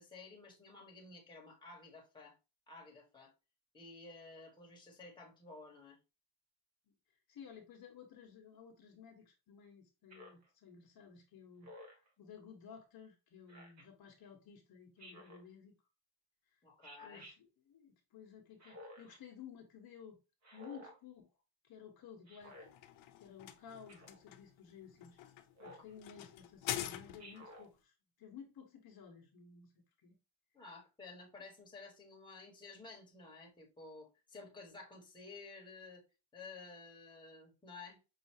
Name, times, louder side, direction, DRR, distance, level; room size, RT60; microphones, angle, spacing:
voice 1, 0.0-2.3 2.7-3.3 3.7-6.0 16.6-17.3 30.5-36.0 36.3-38.0, left 3 dB, 10° left, 1.2 m, -53 dB
voice 2, 7.3-15.7 16.5-16.6 17.0-20.2 20.5-21.3 21.6-22.7 23.2-25.2 25.6-29.7 30.0-30.2, left 7 dB, 45° left, 1.0 m, -55 dB
Speech synthesizer, 10.1-10.5 11.6-12.1 13.5-13.9 15.0-15.5 16.8-17.4 18.6-19.2 20.4-21.0 22.3-22.7 23.9-24.2 25.6-25.9 27.2-27.7, equal, 30° right, 1.1 m, -54 dB
sound 1, 22.4-27.5, left 12 dB, 65° left, 0.7 m, -45 dB
5.5 x 2.7 x 2.7 m
cardioid pair, 150°, 50 cm